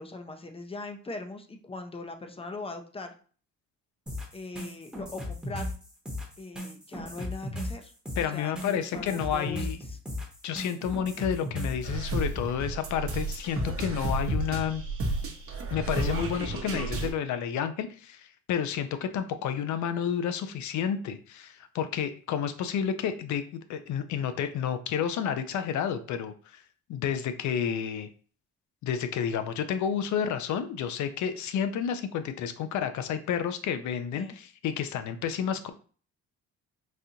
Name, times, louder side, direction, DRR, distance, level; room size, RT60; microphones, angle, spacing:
voice 1, 0.0-3.1 4.3-5.7 6.4-7.9 8.3-10.0 34.1-34.4, left 3 dB, 20° left, 6 dB, 0.5 m, -40 dB
sound 1, 4.1-11.9, left 1 dB, 5° right, 0.9 m, -36 dB
voice 2, 8.2-9.8 10.4-14.8 15.7-26.6 26.9-28.1 28.8-35.7, left 8 dB, 70° left, 10 dB, 0.5 m, -30 dB
sound 2, 11.8-17.1, right 2 dB, 50° right, 0.9 m, -31 dB
4.0 x 2.5 x 2.7 m, 0.42 s
cardioid pair, 90°, 30 cm